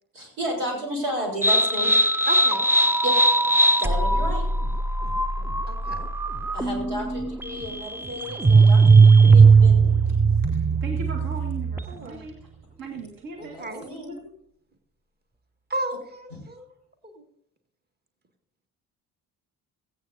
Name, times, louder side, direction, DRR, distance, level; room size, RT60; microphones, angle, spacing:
voice 1, 0.1-1.9 3.0-3.1 3.8-4.4 6.5-10.0 13.4-13.5 13.8-14.1, equal, 75° right, 0 dB, 3.8 m, -32 dB
sound 1, 1.4-12.0, right 4 dB, 5° right, 0.4 m, -19 dB
voice 2, 2.3-2.7 5.0-5.1 5.7-6.1 11.9-12.2 13.4-13.8 15.7-16.7 17.0-17.2, right 2 dB, 20° right, 5 dB, 1.8 m, -34 dB
voice 3, 10.0-12.5 12.8-14.3, right 3 dB, 45° right, 3 dB, 1.9 m, -39 dB
17.0 x 15.5 x 2.6 m, 0.69 s
figure-of-eight pair, 45°, 45 cm